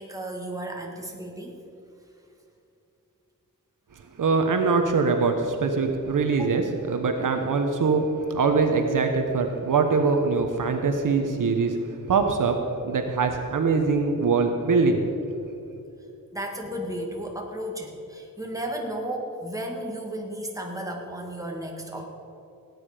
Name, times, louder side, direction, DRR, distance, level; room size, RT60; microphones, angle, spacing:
voice 1, 0.0-1.6 6.3-6.5 16.3-22.1, right 1 dB, 10° right, 1 dB, 2.0 m, -34 dB
voice 2, 4.2-11.8 12.1-15.1, right 4 dB, 65° right, 5 dB, 1.2 m, -23 dB
17.5 x 9.7 x 5.1 m, 2.7 s
wide cardioid pair, 110°, 34 cm